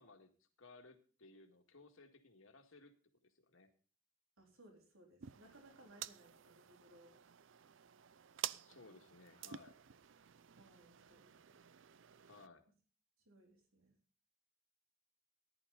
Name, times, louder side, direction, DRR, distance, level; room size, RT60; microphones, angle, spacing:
voice 1, 0.0-3.0 3.2-3.7 8.6-9.8 12.2-12.7, left 3 dB, 75° left, 5 dB, 2.0 m, -61 dB
voice 2, 4.4-7.1 10.5-11.6 13.3-14.0, right 1 dB, 75° right, 2 dB, 3.7 m, -64 dB
sound 1, 5.2-12.5, right 11 dB, 60° right, 0.5 m, -51 dB
14.5 x 10.5 x 4.0 m, 0.38 s
head